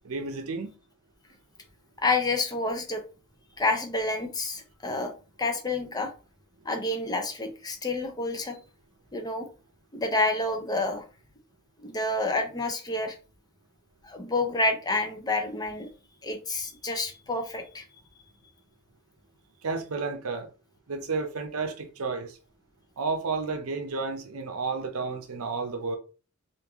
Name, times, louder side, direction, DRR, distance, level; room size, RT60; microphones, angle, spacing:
voice 1, 0.0-0.7 19.6-20.5 20.9-22.4 23.0-26.0, right 4 dB, 75° right, 0.6 m, -31 dB
voice 2, 2.0-3.0 3.6-5.1 5.4-6.1 6.6-8.6 9.1-9.5 9.9-11.0 11.8-13.2 14.0-15.9 16.2-17.8, left 2 dB, 20° left, 0.6 m, -28 dB
3.2 x 2.5 x 3.5 m
head